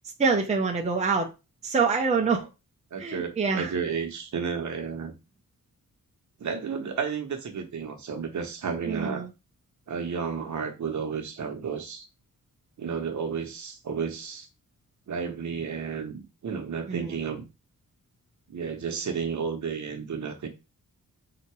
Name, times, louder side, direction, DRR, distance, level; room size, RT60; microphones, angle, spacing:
voice 1, 0.2-1.3 1.6-2.5 3.0-3.7 8.9-9.3 16.9-17.1, right 4 dB, 20° right, 0.7 m, -25 dB
voice 2, 2.9-5.1 6.4-9.3 9.9-12.1 12.8-14.5 15.1-17.4 18.5-20.5, right 6 dB, 55° right, 1.0 m, -32 dB
3.9 x 2.9 x 4.6 m
wide cardioid pair, 150°, 35 cm